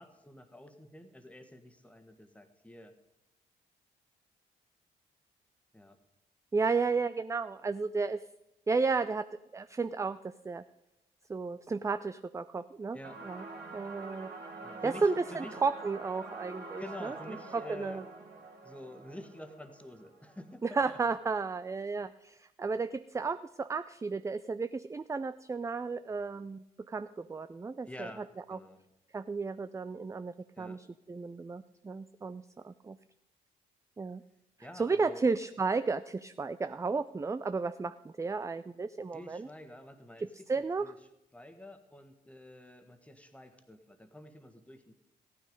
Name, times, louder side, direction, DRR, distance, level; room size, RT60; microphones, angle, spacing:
voice 1, 0.0-2.9 5.7-6.0 12.9-13.2 14.6-15.6 16.8-18.0 18.6-21.0 27.8-28.8 30.6-30.8 34.6-35.2 39.1-40.9 41.3-44.9, left 1 dB, 5° left, 6 dB, 1.6 m, -48 dB
voice 2, 6.5-8.2 8.7-9.3 9.5-10.2 10.4-10.6 11.3-13.5 13.7-14.4 14.8-17.2 17.5-18.0 20.6-28.6 29.1-33.0 34.0-34.2 34.7-39.5 40.2-40.9, right 4 dB, 15° right, 12 dB, 0.4 m, -33 dB
sound 1, 13.0-20.6, right 3 dB, 70° right, 2.4 m, -46 dB
14.5 x 9.4 x 5.2 m, 0.92 s
supercardioid pair, 55°, 18 cm